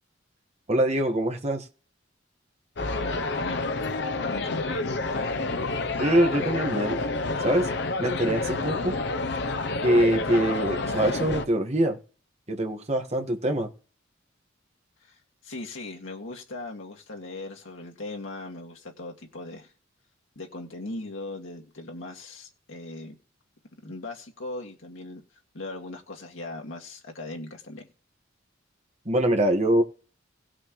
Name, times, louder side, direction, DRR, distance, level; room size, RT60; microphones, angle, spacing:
voice 1, 0.7-1.7 6.0-7.0 7.4-7.7 8.0-8.9 9.8-12.0 12.5-13.7 29.0-29.8, right 1 dB, 35° right, 1.4 m, -24 dB
sound 1, 2.8-11.4, left 3 dB, 60° left, 0.6 m, -29 dB
voice 2, 2.9-5.3 15.1-15.2 15.4-19.7 20.4-23.2 23.8-25.2 25.5-27.9, left 2 dB, 90° left, 2.0 m, -39 dB
19.0 x 6.3 x 3.1 m
head